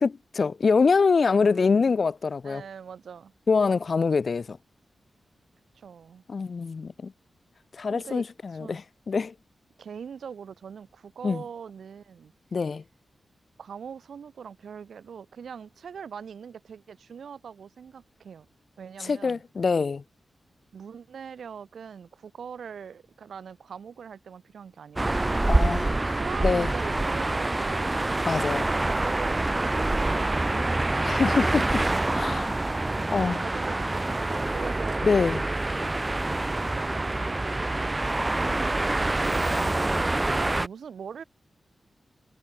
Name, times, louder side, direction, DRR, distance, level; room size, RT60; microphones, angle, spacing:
voice 1, 0.0-2.6 3.5-4.6 6.3-7.1 7.8-9.3 11.2-11.4 12.5-12.8 19.0-20.0 25.5-26.0 26.4-26.7 28.3-28.7 31.0-32.5 33.1-33.4 35.0-35.4, left 5 dB, 50° left, 0.7 m, -25 dB
voice 2, 2.4-3.3 5.7-6.2 7.8-8.2 8.5-8.8 9.8-12.3 13.6-18.5 18.8-19.4 20.7-25.3 26.0-28.0 28.5-30.8 32.9-35.0 36.5-38.1 38.7-41.2, right 7 dB, 85° right, 7.6 m, -42 dB
sound 1, 25.0-40.7, right 2 dB, 20° right, 0.6 m, -26 dB
wide cardioid pair, 130°, 0 cm